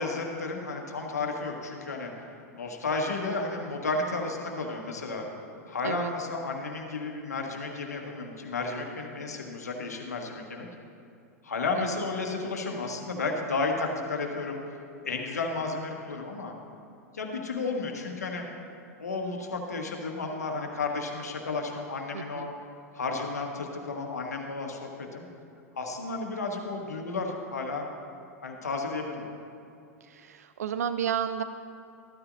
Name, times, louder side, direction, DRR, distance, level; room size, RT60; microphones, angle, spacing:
voice 1, 0.0-2.1 2.5-5.2 5.7-10.7 11.4-14.6 15.0-16.5 17.1-18.4 19.0-22.5 22.9-25.3 25.7-27.8 28.4-29.3, left 3 dB, 80° left, 2 dB, 1.5 m, -32 dB
voice 2, 22.1-22.5 30.1-31.4, right 8 dB, 75° right, 11 dB, 0.4 m, -32 dB
14.0 x 12.5 x 2.7 m, 2.5 s
hypercardioid pair, 95°, 9 cm